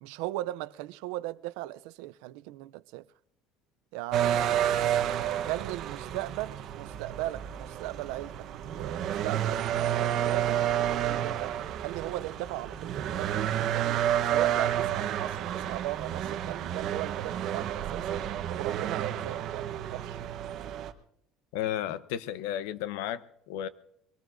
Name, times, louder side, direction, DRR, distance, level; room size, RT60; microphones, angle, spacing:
voice 1, 0.0-3.0 3.9-4.6 5.5-14.0 14.3-18.2 18.6-20.2, right 17 dB, 80° right, 0.5 m, -38 dB
sound 1, 4.1-20.9, right 10 dB, 50° right, 1.0 m, -30 dB
voice 2, 21.5-23.7, left 11 dB, 85° left, 0.8 m, -33 dB
23.5 x 18.5 x 2.6 m
cardioid pair, 150°, 0 cm